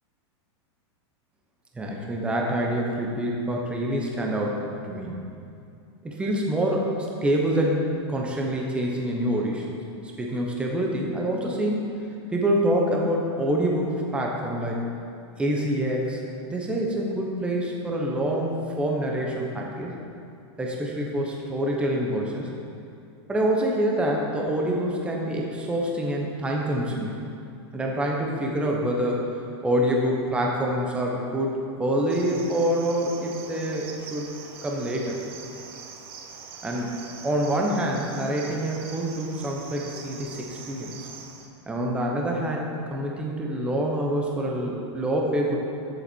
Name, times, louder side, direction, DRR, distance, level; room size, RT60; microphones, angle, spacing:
voice 1, 1.7-5.2 6.0-7.8 8.1-9.7 10.2-14.8 15.4-16.2 16.5-20.0 20.6-22.5 23.3-27.1 27.7-29.3 29.6-34.3 34.6-35.2 36.6-40.9 41.7-45.6, right 1 dB, 5° right, -1 dB, 1.0 m, -26 dB
Cricket, 32.1-41.5, right 5 dB, 55° right, 1.2 m, -43 dB
14.0 x 7.2 x 4.6 m, 2.5 s
supercardioid pair, 165°, 15 cm